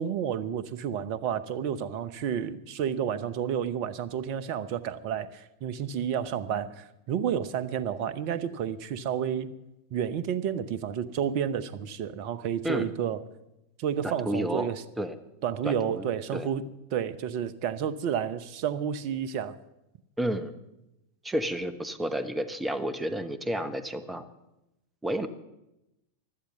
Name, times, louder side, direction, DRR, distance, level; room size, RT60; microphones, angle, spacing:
voice 1, 0.0-9.5 9.9-13.2 13.8-14.8 15.4-16.6 16.9-19.6, right 8 dB, 45° right, 15 dB, 0.8 m, -30 dB
voice 2, 14.0-14.7 15.0-15.2 15.6-16.0 16.3-16.5 20.2-20.5 21.2-24.2 25.0-25.3, right 1 dB, 10° right, 11 dB, 1.1 m, -31 dB
16.0 x 12.0 x 6.0 m, 0.91 s
figure-of-eight pair, 90°, 0 cm